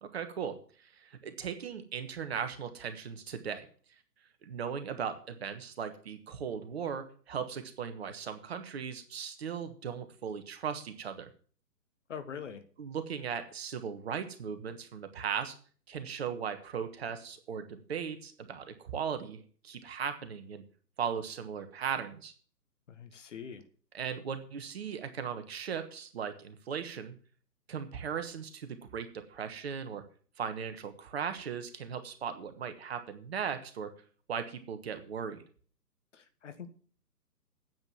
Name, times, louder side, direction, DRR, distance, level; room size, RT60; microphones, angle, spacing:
voice 1, 0.0-3.7 4.4-11.3 12.8-15.5 15.9-20.6 21.0-22.3 23.9-27.1 27.7-30.0 30.4-33.9 34.3-35.4, right 7 dB, 40° right, 9 dB, 1.3 m, -38 dB
voice 2, 12.1-12.6 22.9-23.6 36.1-36.7, left 7 dB, 45° left, 10 dB, 1.5 m, -43 dB
9.5 x 7.6 x 7.1 m, 0.44 s
figure-of-eight pair, 135°, 50 cm